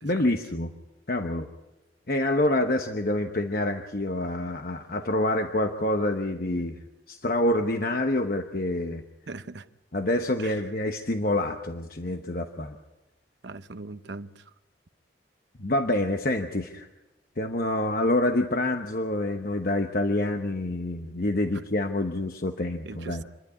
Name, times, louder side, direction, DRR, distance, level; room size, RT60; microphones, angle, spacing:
voice 1, 0.0-0.7 1.1-1.5 2.1-9.0 9.9-12.8 15.6-16.9 17.4-23.2, left 1 dB, 50° left, 1.0 m, -27 dB
voice 2, 9.3-9.7 10.4-10.6 13.4-14.4 22.8-23.2, right 3 dB, 75° right, 0.8 m, -40 dB
27.0 x 11.0 x 9.7 m
head